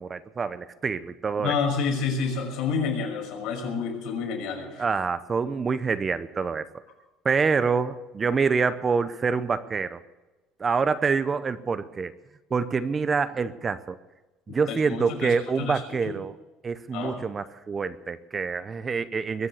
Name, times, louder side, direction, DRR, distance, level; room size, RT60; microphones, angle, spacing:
voice 1, 0.0-1.5 4.8-6.7 7.2-10.0 10.6-12.1 12.5-14.0 14.5-16.3 16.6-19.5, right 5 dB, 25° right, 13 dB, 0.7 m, -26 dB
voice 2, 1.4-4.8 14.5-16.1 16.9-17.2, left 5 dB, 70° left, 0 dB, 6.1 m, -29 dB
22.0 x 7.4 x 8.2 m, 1.1 s
cardioid pair, 130°, 0 cm